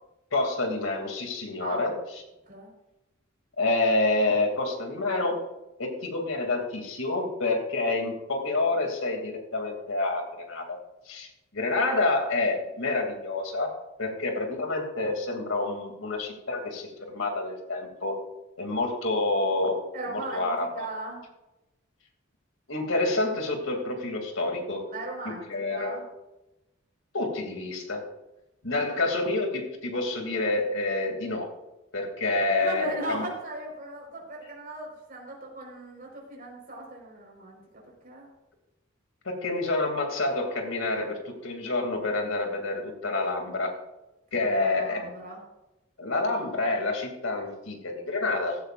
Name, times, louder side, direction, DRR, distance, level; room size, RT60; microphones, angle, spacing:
voice 1, 0.3-1.9 3.6-5.4 5.8-10.8 11.0-18.2 18.6-19.8 20.1-20.9 22.7-24.9 25.5-25.9 27.1-28.0 28.6-31.5 31.9-33.2 39.2-43.8 44.3-45.1 46.0-48.6, left 2 dB, 80° left, 3 dB, 2.7 m, -28 dB
voice 2, 19.9-21.3 24.9-26.1 28.8-29.1 32.6-38.3 44.3-45.4, right 2 dB, 45° right, -1 dB, 4.6 m, -38 dB
15.5 x 13.5 x 2.5 m, 0.97 s
head